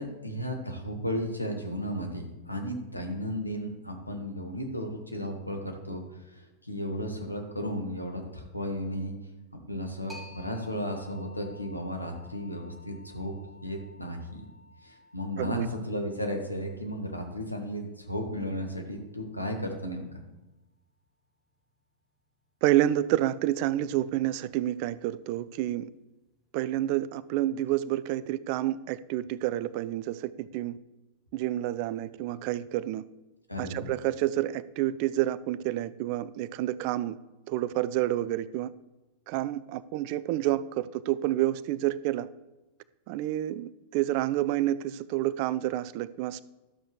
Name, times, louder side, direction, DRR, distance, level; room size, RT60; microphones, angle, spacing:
voice 1, 0.0-6.0 6.3-9.1 9.7-13.3 13.6-14.5 14.8-20.2 33.5-33.9, equal, 85° left, 3 dB, 1.3 m, -34 dB
sound 1, 10.1-19.5, left 3 dB, 5° right, 1.4 m, -54 dB
voice 2, 15.4-15.7 22.6-25.9 26.5-30.8 31.3-33.0 33.6-37.2 37.5-38.7 39.3-42.3 43.1-46.4, right 14 dB, 45° right, 17 dB, 0.3 m, -29 dB
12.5 x 6.9 x 3.1 m, 1.0 s
figure-of-eight pair, 90°, 0 cm